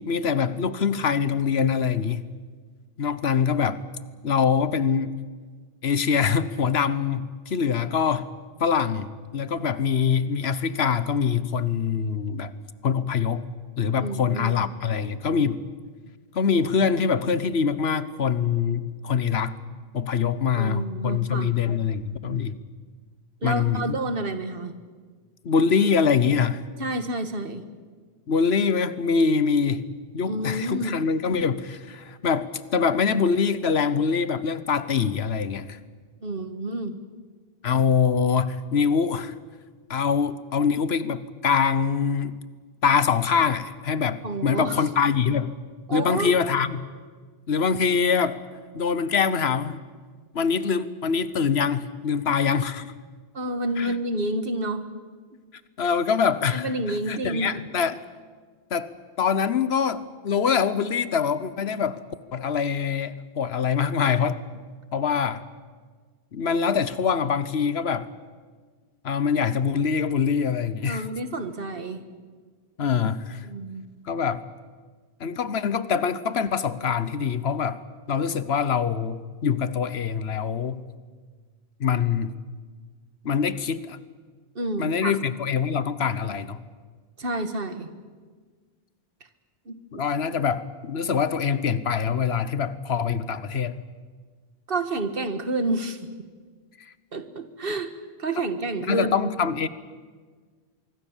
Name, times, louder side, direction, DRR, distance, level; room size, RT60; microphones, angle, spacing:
voice 1, 0.1-2.2 3.0-3.8 4.2-5.2 5.8-8.3 8.6-12.5 12.8-13.5 13.8-15.6 16.3-19.6 19.9-22.6 23.4-24.0 25.4-26.6 28.3-29.9 30.1-35.8 37.6-39.3 39.9-42.4 42.8-45.5 45.9-46.8 47.5-48.4 48.7-49.8 50.3-52.9 53.8-53.9 55.8-58.0 58.7-58.9 59.2-62.0 62.3-64.4 64.9-65.4 66.3-68.1 69.0-71.0 72.8-73.5 74.0-74.4 75.2-77.8 78.1-80.8 81.8-82.3 83.2-84.0 84.8-86.6 89.9-93.8 98.9-99.7, left 6 dB, 85° left, 15 dB, 1.3 m, -24 dB
voice 2, 14.0-14.6 20.5-21.5 23.4-24.7 26.8-27.6 30.3-31.0 36.2-37.0 44.2-44.8 45.9-46.4 53.3-54.9 56.5-57.5 70.9-72.0 73.4-73.8 84.6-85.1 87.2-87.9 89.7-90.0 94.7-96.0 97.1-97.9 98.2-99.3, right 2 dB, 65° right, 9 dB, 1.8 m, -29 dB
25.0 x 23.5 x 7.3 m, 1.5 s
omnidirectional pair, 1.0 m